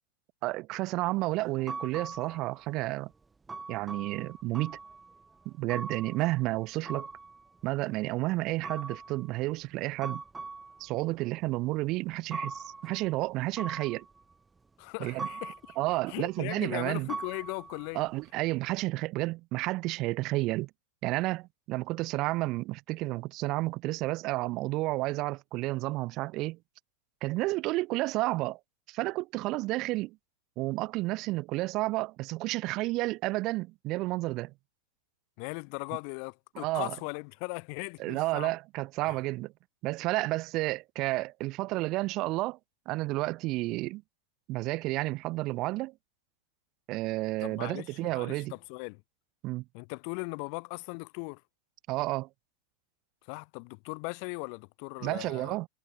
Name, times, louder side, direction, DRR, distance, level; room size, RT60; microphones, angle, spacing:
voice 1, 0.4-3.1 3.7-4.8 5.5-7.1 7.6-10.2 10.8-14.1 15.0-15.3 15.8-17.1 17.9-20.7 21.0-26.6 27.2-28.6 28.9-30.2 30.6-34.5 36.6-36.9 38.0-39.5 39.8-42.6 42.9-44.0 44.5-45.9 46.9-48.5 49.4-49.6 51.9-52.3 55.0-55.7, right 20 dB, 40° right, 0.3 m, -31 dB
sound 1, 1.3-2.8 3.5-7.8 8.6-9.4 10.0-10.9 12.3-13.3 13.5-14.3 15.2-16.0 17.1-18.2, right 4 dB, 10° right, 0.8 m, -41 dB
voice 2, 14.8-18.0 35.4-38.5 39.1-39.2 47.4-49.0 49.7-51.4 53.2-55.6, left 40 dB or more, 45° left, 0.3 m, -39 dB
figure-of-eight pair, 90°, 0 cm